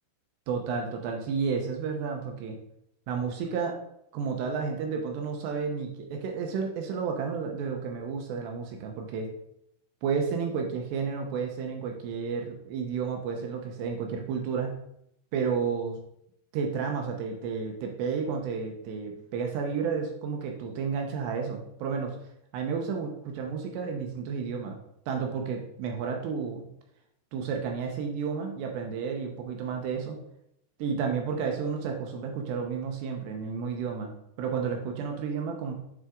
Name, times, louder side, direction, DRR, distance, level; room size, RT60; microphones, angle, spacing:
voice 1, 0.5-2.6 3.1-3.8 4.1-9.3 10.0-14.8 15.3-16.0 16.5-22.2 22.5-24.8 25.1-26.7 27.3-30.2 30.8-34.1 34.4-35.7, right 6 dB, 75° right, 2 dB, 2.7 m, -31 dB
9.5 x 4.1 x 3.7 m, 0.74 s
omnidirectional pair, 5.5 m